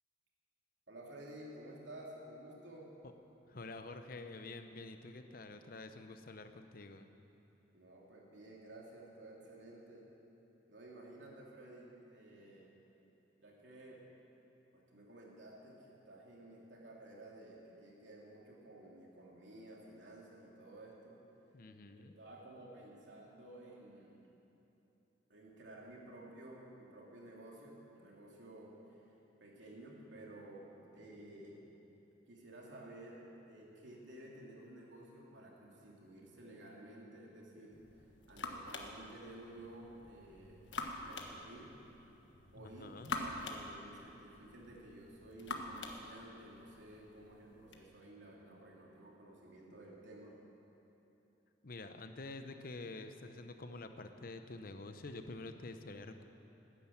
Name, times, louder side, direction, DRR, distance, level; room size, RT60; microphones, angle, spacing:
voice 1, 0.9-2.9 7.7-10.1 10.7-12.7 13.4-14.0 14.7-21.2 21.9-24.2 25.3-29.1 29.4-31.6 32.3-41.7 42.5-50.3, right 1 dB, 80° right, -3 dB, 2.9 m, -53 dB
voice 2, 3.5-7.1 21.5-22.1 42.6-43.1 51.6-56.2, left 2 dB, 55° left, 8 dB, 0.8 m, -48 dB
sound 1, 37.7-47.8, left 3 dB, 80° left, 1.3 m, -46 dB
13.0 x 10.0 x 8.7 m, 3.0 s
head